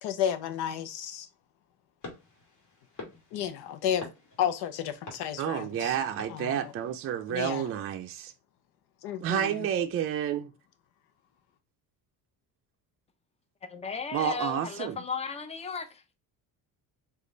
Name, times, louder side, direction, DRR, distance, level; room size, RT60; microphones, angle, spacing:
voice 1, 0.0-1.3 3.3-4.1 4.4-6.0 6.3-6.7 7.3-7.6 9.0-9.7, left 9 dB, 75° left, 0.8 m, -32 dB
sound 1, 2.0-7.2, left 2 dB, 50° left, 2.1 m, -48 dB
voice 2, 5.4-8.3 9.2-10.5 14.1-15.0, right 9 dB, 35° right, 0.5 m, -30 dB
voice 3, 13.7-16.1, left 5 dB, 15° left, 0.5 m, -35 dB
5.1 x 2.5 x 3.9 m
cardioid pair, 145°, 38 cm